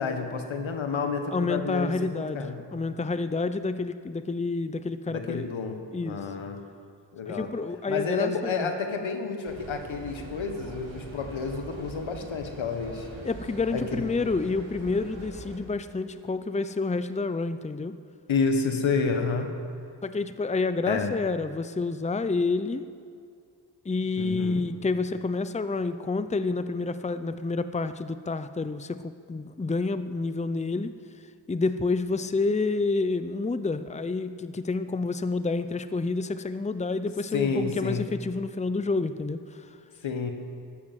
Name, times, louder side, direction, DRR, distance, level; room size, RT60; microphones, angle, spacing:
voice 1, 0.0-2.6 5.1-5.7 6.0-6.6 7.1-7.5 7.9-13.1 13.7-14.0 18.3-19.5 20.9-21.1 24.2-24.6 37.3-38.0 40.0-40.3, left 5 dB, 90° left, 5 dB, 1.7 m, -29 dB
voice 2, 1.3-5.5 5.9-6.2 7.3-8.7 13.2-18.0 20.0-22.8 23.8-30.9 31.5-39.7, left 3 dB, 15° left, 12 dB, 0.7 m, -29 dB
sound 1, 9.5-15.6, right 2 dB, 75° right, 3.1 m, -43 dB
14.0 x 12.5 x 7.6 m, 2.3 s
cardioid pair, 55°, 46 cm